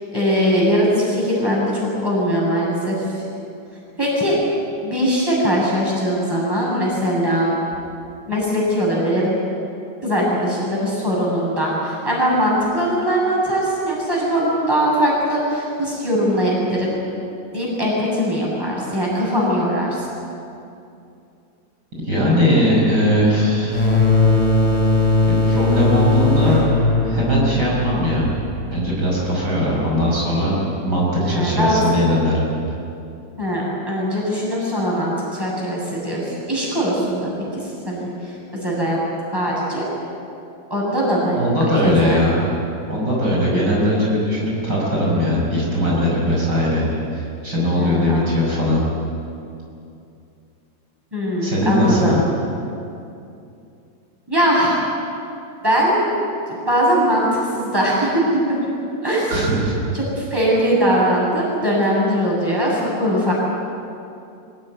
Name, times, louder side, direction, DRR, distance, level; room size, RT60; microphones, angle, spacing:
voice 1, 0.1-3.2 4.0-4.4 4.8-7.5 8.3-9.4 10.0-17.0 17.5-20.1 31.2-32.1 33.4-39.0 39.3-39.9 40.7-41.4 41.8-42.3 43.4-43.7 47.8-48.4 51.1-52.2 54.3-54.9 55.6-56.2 56.5-58.2 58.5-58.6 59.0-59.4 59.9-63.3, equal, 10° right, -5 dB, 7.4 m, -21 dB
voice 2, 22.0-23.9 25.3-26.6 27.0-28.3 28.7-30.6 30.8-32.4 41.3-42.4 42.9-46.8 47.1-48.8 51.4-52.2 59.3-59.8, left 1 dB, 65° right, -4 dB, 6.6 m, -19 dB
sound 1, 23.7-29.1, left 2 dB, 20° left, 3.7 m, -18 dB
24.0 x 17.5 x 9.4 m, 2.6 s
omnidirectional pair, 2.0 m